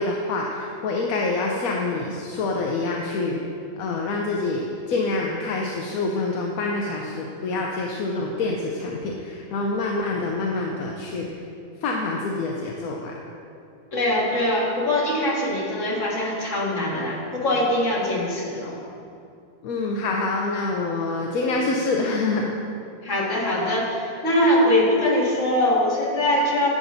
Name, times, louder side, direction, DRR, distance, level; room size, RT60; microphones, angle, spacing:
voice 1, 0.0-3.4 3.8-11.3 11.8-13.1 19.6-22.5, left 3 dB, 65° left, -1 dB, 1.0 m, -26 dB
voice 2, 13.9-18.8 23.0-26.7, left 1 dB, 45° left, -5 dB, 2.0 m, -22 dB
11.0 x 8.4 x 2.7 m, 2.5 s
omnidirectional pair, 1.8 m